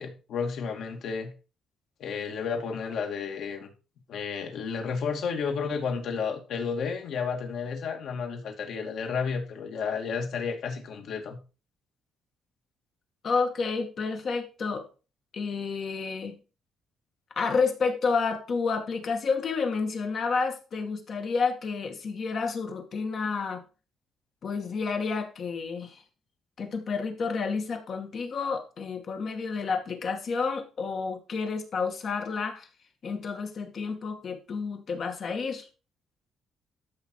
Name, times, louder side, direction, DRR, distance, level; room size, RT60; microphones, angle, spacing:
voice 1, 0.0-1.3 2.0-3.7 4.1-11.4, left 5 dB, 55° left, 3 dB, 2.5 m, -32 dB
voice 2, 13.2-14.8 15.3-16.4 17.4-23.6 24.4-26.0 26.6-32.7 33.0-35.7, left 4 dB, 40° left, 4 dB, 2.3 m, -30 dB
13.5 x 5.7 x 4.9 m, 0.34 s
cardioid pair, 175°, 0 cm